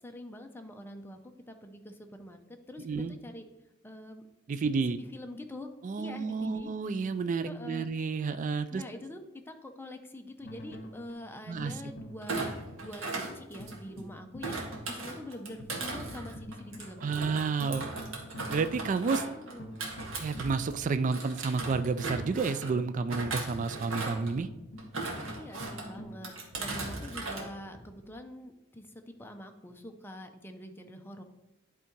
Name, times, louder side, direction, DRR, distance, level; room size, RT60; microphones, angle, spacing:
voice 1, 0.0-1.2 1.5-3.5 3.8-4.2 4.6-5.7 6.0-6.7 7.4-7.9 8.3-8.4 8.7-12.5 12.8-14.6 14.9-17.1 19.3-19.7 25.4-31.2, left 1 dB, 10° left, 5 dB, 0.6 m, -45 dB
voice 2, 2.8-3.1 4.5-5.0 5.8-8.8 11.5-11.7 17.0-17.9 18.5-19.3 20.2-24.5, right 4 dB, 40° right, 12 dB, 0.3 m, -30 dB
sound 1, 10.4-26.3, equal, 50° left, 1.3 m, -47 dB
Thump thud, 12.2-14.0 14.4-20.8 21.1-22.7 23.1-24.3 24.8-25.8 26.2-27.5 27.7-28.1, right 3 dB, 70° right, 1.6 m, -38 dB
11.0 x 3.6 x 4.6 m, 0.97 s
head